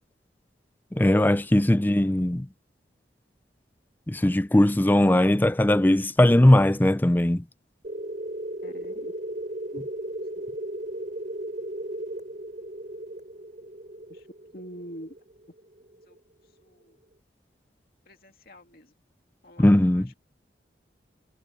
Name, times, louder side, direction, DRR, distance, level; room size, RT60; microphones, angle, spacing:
voice 1, 0.9-2.5 4.1-7.4 19.6-20.1, left 1 dB, 10° left, 0.4 m, -19 dB
sound 1, 7.8-16.2, right 1 dB, 45° right, 7.3 m, -36 dB
voice 2, 8.6-9.1 9.7-9.8 14.1-14.3 14.5-15.1 16.1-16.2 16.6-17.0 18.1-18.9 19.4-20.2, equal, 55° left, 2.4 m, -45 dB
head